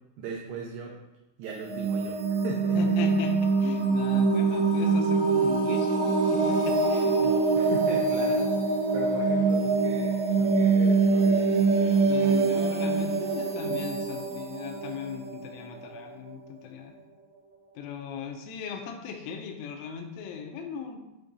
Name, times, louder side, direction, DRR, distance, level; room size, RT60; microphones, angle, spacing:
voice 1, 0.2-1.0 1.4-2.9 7.5-12.0, right 6 dB, 85° right, 0 dB, 2.4 m, -38 dB
sound 1, 1.5-16.2, right 4 dB, 70° right, 3.4 m, -24 dB
voice 2, 2.8-7.4 12.1-17.0 17.8-21.0, left 6 dB, 90° left, 4 dB, 3.3 m, -38 dB
8.0 x 3.6 x 4.0 m, 0.95 s
omnidirectional pair, 5.7 m